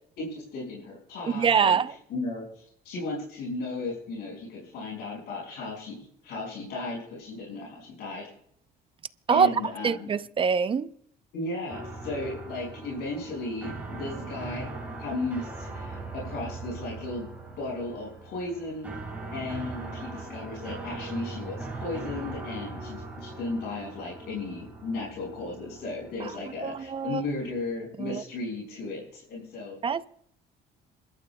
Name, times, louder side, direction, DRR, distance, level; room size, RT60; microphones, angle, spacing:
voice 1, 0.2-1.8 2.1-2.5 2.9-8.3 9.3-10.1 11.3-14.7 15.0-17.3 17.5-18.9 19.3-29.8, left 2 dB, 75° left, 5.4 m, -35 dB
voice 2, 1.3-1.9 9.3-9.5 9.8-10.9 26.2-26.3 26.6-27.2 28.0-28.2 29.8-30.1, right 6 dB, 30° right, 0.6 m, -24 dB
sound 1, 11.7-27.6, right 3 dB, 10° right, 5.6 m, -40 dB
27.5 x 13.0 x 2.3 m
cardioid pair, 110°, 17 cm